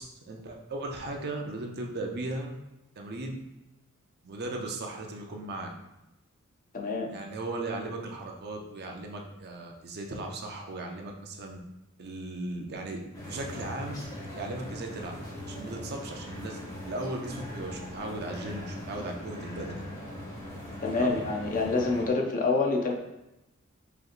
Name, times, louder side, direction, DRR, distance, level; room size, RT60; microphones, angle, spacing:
voice 1, 0.0-2.5 3.0-3.4 4.2-5.7 7.1-11.6 12.0-13.0 13.2-14.0 14.3-15.1 15.5-19.8 20.9-21.2, right 2 dB, 50° right, 2 dB, 0.6 m, -37 dB
voice 2, 6.7-7.1 20.8-22.9, left 3 dB, 40° left, 1 dB, 0.5 m, -27 dB
sound 1, 13.1-22.1, left 1 dB, 15° left, 1.2 m, -41 dB
5.0 x 3.0 x 2.5 m, 0.94 s
head